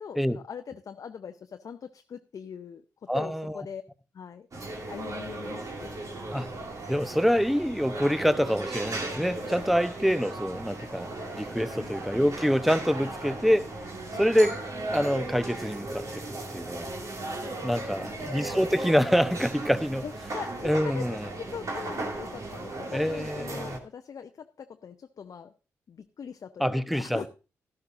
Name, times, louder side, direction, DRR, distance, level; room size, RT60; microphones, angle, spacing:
voice 1, 0.0-3.8 4.1-4.5 4.9-6.0 11.7-12.0 14.1-14.3 17.7-18.4 20.0-25.5 25.9-27.3, left 7 dB, 55° left, 0.6 m, -42 dB
voice 2, 3.1-3.6 6.3-6.5 6.9-11.1 11.4-13.7 14.2-14.6 14.9-16.2 16.5-16.9 17.6-20.0 20.6-21.3 22.9-23.8 26.6-27.3, equal, ahead, 0.8 m, -26 dB
sound 1, 4.5-23.8, right 2 dB, 50° right, 2.4 m, -37 dB
12.5 x 12.0 x 2.6 m
hypercardioid pair, 40°, 7 cm